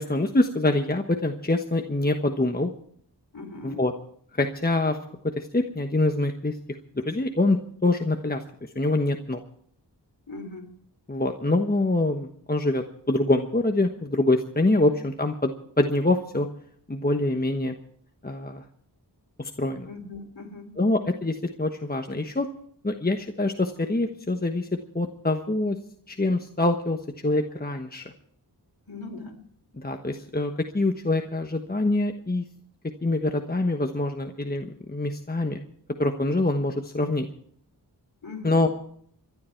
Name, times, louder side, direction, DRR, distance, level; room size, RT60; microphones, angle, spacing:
voice 1, 0.0-2.7 3.6-3.9 4.3-5.0 5.2-6.5 6.9-9.4 11.1-16.5 16.9-17.8 18.2-18.6 19.4-19.9 20.8-22.5 22.8-24.7 24.9-25.8 26.1-27.0 27.2-28.0 29.8-32.4 33.0-35.6 36.0-37.3 38.4-38.7, left 2 dB, 20° left, 4 dB, 1.2 m, -25 dB
voice 2, 3.3-3.8 10.3-10.7 19.8-20.8 28.9-29.4 38.2-38.6, left 3 dB, 55° left, 3 dB, 4.0 m, -39 dB
26.0 x 11.5 x 4.6 m, 0.63 s
wide cardioid pair, 55°, 42 cm